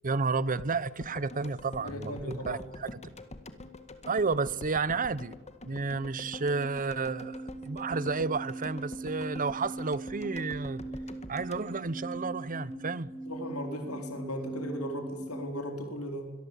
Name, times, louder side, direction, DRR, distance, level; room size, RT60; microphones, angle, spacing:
voice 1, 0.0-3.0 4.1-5.3 5.6-10.8 11.3-13.1, right 4 dB, 40° right, 0.9 m, -31 dB
sound 1, 0.6-12.8 13.0-13.1, left 2 dB, 30° left, 1.9 m, -46 dB
voice 2, 1.8-2.6 5.7-5.8 13.2-16.3, equal, 75° left, 4.3 m, -37 dB
sound 2, 5.9-15.5, right 2 dB, 5° right, 3.1 m, -41 dB
24.0 x 22.0 x 8.3 m
head